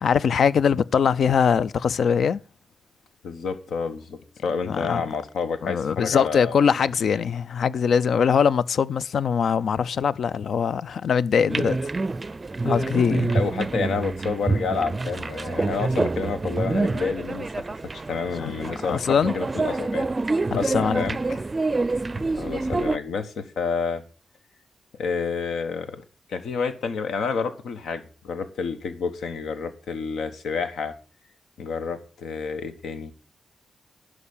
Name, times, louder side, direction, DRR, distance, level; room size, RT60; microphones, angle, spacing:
voice 1, 0.0-2.4 4.7-5.0 5.6-11.8 12.6-13.3 18.4-18.5 18.9-19.3 20.5-21.0, left 7 dB, 70° left, 0.4 m, -22 dB
voice 2, 3.2-6.6 7.1-7.3 13.3-17.6 18.1-20.1 20.5-21.2 22.3-24.0 25.0-26.0 26.3-30.9 31.6-33.1, left 5 dB, 90° left, 1.2 m, -29 dB
sound 1, 11.5-23.0, right 3 dB, 30° right, 0.4 m, -27 dB
11.5 x 5.0 x 7.1 m
cardioid pair, 95°, 0 cm